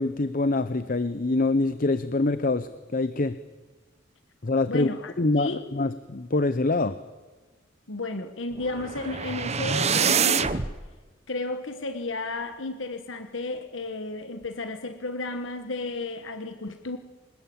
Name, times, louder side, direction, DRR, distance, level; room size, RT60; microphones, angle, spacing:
voice 1, 0.0-3.4 4.4-4.9 5.2-7.0, left 2 dB, 45° left, 13 dB, 0.8 m, -25 dB
voice 2, 4.7-5.7 7.9-10.6 11.3-17.0, left 2 dB, 75° left, 8 dB, 1.4 m, -33 dB
sound 1, 8.6-10.7, right 6 dB, 35° right, 0.9 m, -25 dB
26.0 x 20.0 x 8.7 m, 1.3 s
head